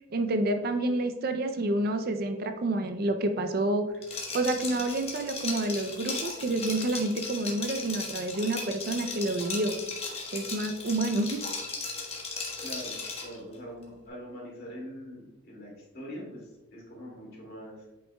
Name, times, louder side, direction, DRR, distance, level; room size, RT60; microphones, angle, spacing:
voice 1, 0.1-3.9 4.3-9.8 10.3-11.4, right 2 dB, 50° right, 7 dB, 0.5 m, -28 dB
Liquid, 4.0-13.4, left 4 dB, 30° left, 1.2 m, -37 dB
voice 2, 12.6-17.9, equal, 50° left, -3 dB, 2.3 m, -43 dB
8.5 x 5.4 x 2.3 m, 1.0 s
head